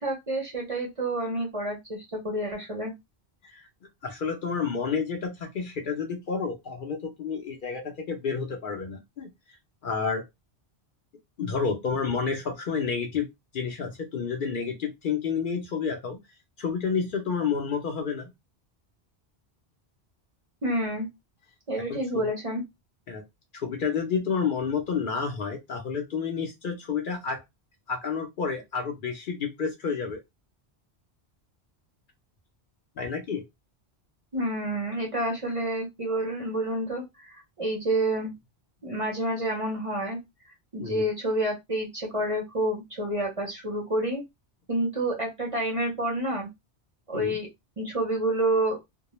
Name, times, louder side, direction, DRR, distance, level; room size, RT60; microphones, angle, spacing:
voice 1, 0.0-2.9 20.6-21.1 21.7-22.6 34.3-38.3 38.8-40.2 40.7-44.2 44.7-46.5 47.1-47.5 47.8-48.8, right 1 dB, 35° right, 0.6 m, -28 dB
voice 2, 4.0-9.3 9.8-10.2 11.4-13.3 13.5-16.2 16.6-18.3 21.9-22.3 23.1-23.2 23.5-27.4 27.9-30.2 33.0-33.4 40.8-41.0 47.1-47.4, left 5 dB, 60° left, 0.6 m, -30 dB
2.2 x 2.0 x 2.9 m
omnidirectional pair, 1.1 m